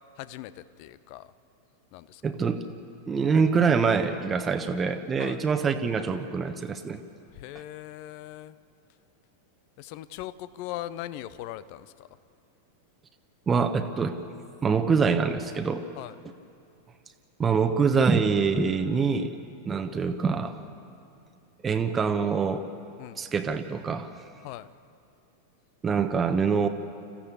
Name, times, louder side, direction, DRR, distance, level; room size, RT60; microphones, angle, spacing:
voice 1, 0.2-1.3 1.9-2.2 5.2-5.4 7.3-8.6 9.8-12.1 16.0-16.1 23.0-23.2 24.4-24.7, left 14 dB, 45° left, 16 dB, 0.7 m, -40 dB
voice 2, 2.2-2.6 3.1-7.0 13.5-14.2 14.6-15.8 17.4-19.4 19.6-20.5 21.6-22.7 23.2-24.1 25.8-26.7, right 5 dB, 20° right, 6 dB, 1.1 m, -25 dB
26.0 x 15.0 x 8.3 m, 2.6 s
figure-of-eight pair, 90°, 0 cm